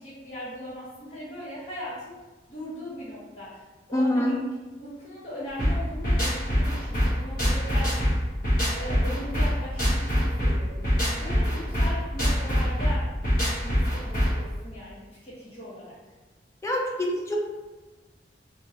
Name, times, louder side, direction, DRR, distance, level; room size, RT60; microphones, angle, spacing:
voice 1, 0.0-2.1 2.5-3.6 3.9-4.3 4.8-7.9 8.7-13.1 13.6-16.0, equal, 35° left, -10 dB, 0.7 m, -39 dB
voice 2, 3.9-4.4 16.6-17.4, left 1 dB, 15° left, -1 dB, 0.4 m, -25 dB
sound 1, 5.6-14.5, equal, 50° left, 1.1 m, -24 dB
2.9 x 2.6 x 2.6 m, 1.2 s
head